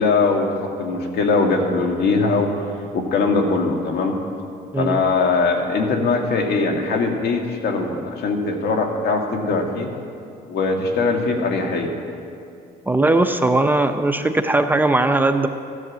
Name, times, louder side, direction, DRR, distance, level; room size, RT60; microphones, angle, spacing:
voice 1, 0.0-2.5 2.9-4.2 4.8-9.9 10.5-11.9, left 3 dB, 70° left, 2 dB, 2.2 m, -21 dB
voice 2, 12.9-15.5, right 2 dB, 10° right, 7 dB, 0.6 m, -18 dB
15.0 x 11.0 x 7.5 m, 2.5 s
cardioid pair, 110°, 17 cm